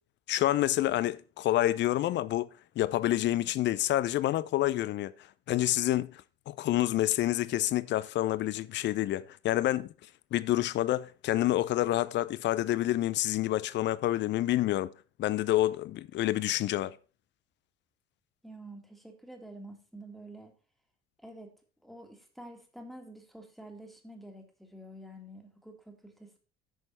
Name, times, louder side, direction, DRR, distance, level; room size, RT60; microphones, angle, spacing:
voice 1, 0.3-2.5 2.8-5.1 5.5-9.9 10.3-14.9 15.2-17.0, left 14 dB, 35° left, 0.5 m, -28 dB
voice 2, 18.4-20.6 21.2-21.5 21.8-26.4, right 1 dB, ahead, 1.9 m, -48 dB
9.2 x 6.3 x 4.4 m
figure-of-eight pair, 60°, 32 cm